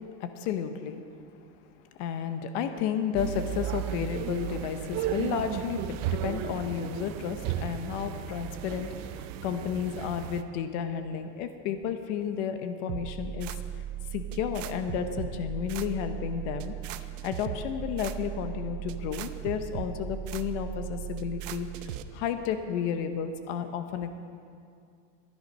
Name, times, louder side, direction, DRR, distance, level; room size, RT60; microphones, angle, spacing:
voice 1, 0.2-1.1 2.0-13.5 14.1-16.8 17.2-24.1, left 8 dB, 70° left, 8 dB, 1.0 m, -32 dB
sound 1, 3.2-10.4, right 11 dB, 45° right, 0.6 m, -34 dB
sound 2, 12.9-22.0, right 10 dB, 90° right, 0.8 m, -37 dB
14.0 x 10.5 x 5.5 m, 2.3 s
supercardioid pair, 150°, 37 cm